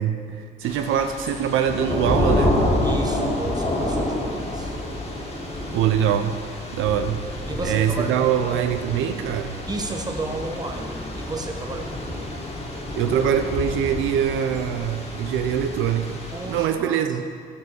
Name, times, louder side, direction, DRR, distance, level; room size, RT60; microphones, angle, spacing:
voice 1, 0.0-2.6 5.7-6.4 6.7-7.2 7.6-9.6 12.9-16.2 16.5-17.3, right 9 dB, 85° right, 8 dB, 0.5 m, -23 dB
Thunder / Rain, 0.6-16.6, left 1 dB, 30° left, 1.9 m, -28 dB
voice 2, 2.8-4.7 7.5-8.6 9.7-12.3 16.3-17.0, right 2 dB, 20° right, 3 dB, 1.1 m, -33 dB
11.5 x 5.4 x 5.4 m, 2.1 s
cardioid pair, 90°, 20 cm